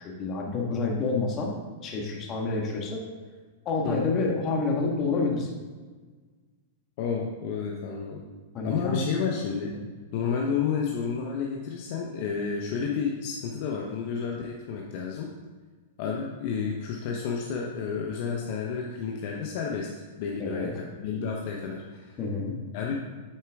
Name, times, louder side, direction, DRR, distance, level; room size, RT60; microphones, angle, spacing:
voice 1, 0.0-1.5 1.8-3.0 3.6-5.5 8.5-9.1 20.4-20.7 22.2-22.6, left 3 dB, 30° left, 0 dB, 1.5 m, -28 dB
voice 2, 7.0-8.2 8.6-9.8 10.1-15.3 16.0-19.9 20.2-22.2 22.7-23.1, left 6 dB, 55° left, 0 dB, 0.9 m, -31 dB
8.6 x 4.3 x 3.6 m, 1.4 s
hypercardioid pair, 125°, 0 cm